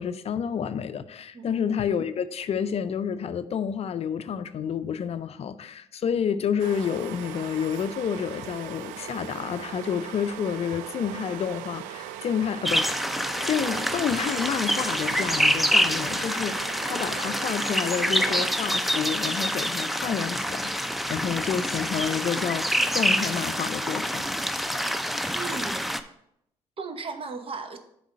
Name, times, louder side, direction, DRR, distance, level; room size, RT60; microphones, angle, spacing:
voice 1, 0.0-13.0 13.4-24.3, left 7 dB, 50° left, 0.5 m, -29 dB
sound 1, 6.6-18.5, right 11 dB, 80° right, 0.4 m, -39 dB
sound 2, 12.6-26.0, equal, ahead, 0.6 m, -27 dB
voice 2, 25.3-25.9 26.8-27.8, right 4 dB, 45° right, 1.0 m, -36 dB
7.2 x 4.0 x 5.6 m
hypercardioid pair, 50°, 13 cm